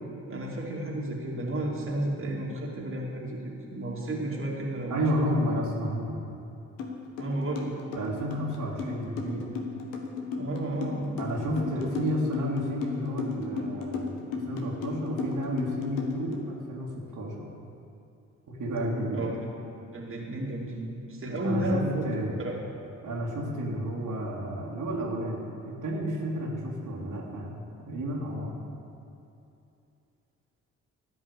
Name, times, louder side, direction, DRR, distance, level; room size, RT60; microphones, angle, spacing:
voice 1, 0.2-5.0 5.4-5.5 7.2-7.7 10.4-11.2 11.5-11.9 19.1-19.4 19.9-22.1 22.4-22.5, right 1 dB, 30° right, -3 dB, 2.6 m, -32 dB
voice 2, 4.9-6.2 7.9-9.5 11.2-14.2 14.5-16.9 17.2-17.5 18.6-19.3 21.4-22.4 23.0-27.5 27.9-28.6, equal, 50° right, -4 dB, 2.5 m, -31 dB
sound 1, 6.8-6.9 7.2-16.4, left 5 dB, 75° left, 1.4 m, -34 dB
16.0 x 5.4 x 8.3 m, 2.7 s
figure-of-eight pair, 40°, 39 cm